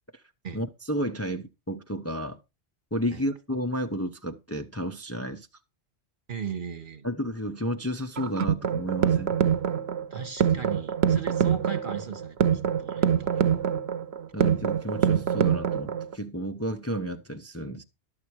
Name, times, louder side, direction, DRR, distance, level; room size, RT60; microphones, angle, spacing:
voice 1, 0.5-2.4 2.9-5.5 7.0-9.3 14.3-17.8, equal, 15° left, 0.8 m, -32 dB
voice 2, 6.3-7.1 10.1-12.4 12.8-13.4, right 7 dB, 50° right, 1.8 m, -36 dB
sound 1, 8.2-16.1, right 8 dB, 70° right, 1.1 m, -25 dB
12.0 x 8.3 x 4.8 m
omnidirectional pair, 1.1 m